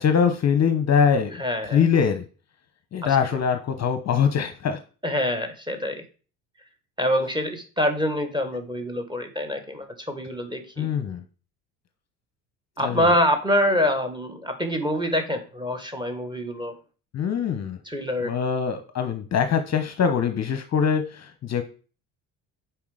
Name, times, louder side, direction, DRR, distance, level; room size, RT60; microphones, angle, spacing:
voice 1, 0.0-1.4 1.7-2.2 2.9-4.8 10.8-11.2 12.8-13.1 17.1-17.8 18.2-21.6, left 7 dB, 35° left, 8 dB, 0.9 m, -23 dB
voice 2, 1.4-1.8 3.0-3.2 5.0-6.0 7.0-10.9 12.8-16.7 17.8-18.3, equal, 10° right, 7 dB, 1.6 m, -25 dB
7.0 x 4.7 x 5.0 m, 0.38 s
hypercardioid pair, 60°, 49 cm